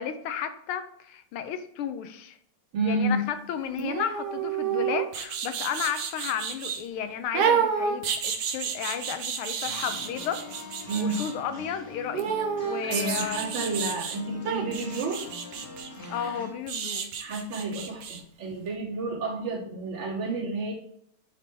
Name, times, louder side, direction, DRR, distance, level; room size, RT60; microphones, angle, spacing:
voice 1, 0.0-2.4 2.8-12.3 12.6-13.6 16.1-17.1, left 8 dB, 80° left, 10 dB, 1.5 m, -33 dB
voice 2, 2.7-3.2 10.9-11.2 12.8-15.2 17.2-20.7, right 3 dB, 85° right, -6 dB, 3.1 m, -30 dB
sound 1, 3.8-6.8 7.3-11.3 12.1-14.2 14.5-18.2 18.5-18.6, right 7 dB, 60° right, 1.1 m, -30 dB
sound 2, 9.6-16.5, left 4 dB, 50° left, 0.7 m, -43 dB
9.7 x 3.6 x 3.4 m, 0.67 s
omnidirectional pair, 2.4 m